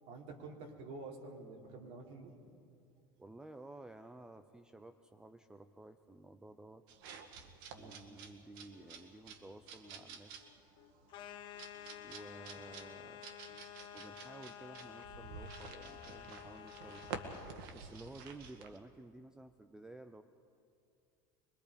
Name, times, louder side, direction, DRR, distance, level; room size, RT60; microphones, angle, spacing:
voice 1, 0.0-2.3 7.7-8.0, right 3 dB, 55° right, 0 dB, 3.5 m, -49 dB
voice 2, 3.2-6.8 7.8-10.5 12.0-13.3 13.9-17.2 17.7-20.2, right 2 dB, 5° right, 9 dB, 0.5 m, -53 dB
sound 1, 6.9-18.8, right 5 dB, 80° right, 2.0 m, -51 dB
sound 2, 8.6-13.9 14.4-14.6 15.1-16.5 16.8-16.9 17.2-17.7, left 10 dB, 75° left, 2.0 m, -65 dB
sound 3, 11.1-17.6, left 11 dB, 45° left, 1.2 m, -51 dB
25.0 x 22.5 x 5.1 m, 2.5 s
cardioid pair, 150°, 12 cm